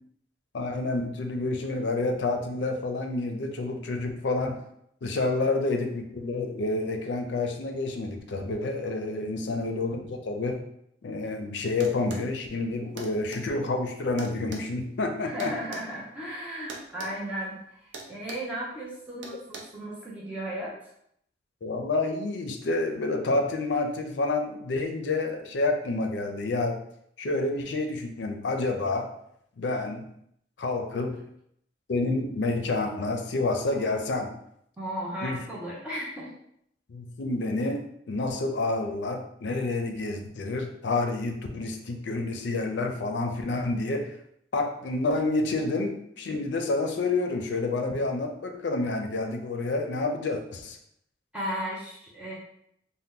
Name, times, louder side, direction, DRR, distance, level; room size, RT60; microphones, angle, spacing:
voice 1, 0.5-4.6 5.0-10.6 11.0-15.5 21.6-26.8 27.2-29.1 29.6-30.1 30.6-31.2 31.9-34.3 35.2-35.4 36.9-44.1 44.5-50.8, left 2 dB, 70° left, 4 dB, 0.4 m, -29 dB
sound 1, 11.8-12.3 13.0-13.4 14.2-15.9 16.7-17.1 17.4-17.6 17.9-18.5 19.2-19.6, right 3 dB, 80° right, 0.6 m, -41 dB
voice 2, 15.2-20.9 34.8-36.3 51.3-52.3, right 1 dB, 5° right, -7 dB, 0.6 m, -35 dB
2.8 x 2.1 x 3.6 m, 0.72 s
head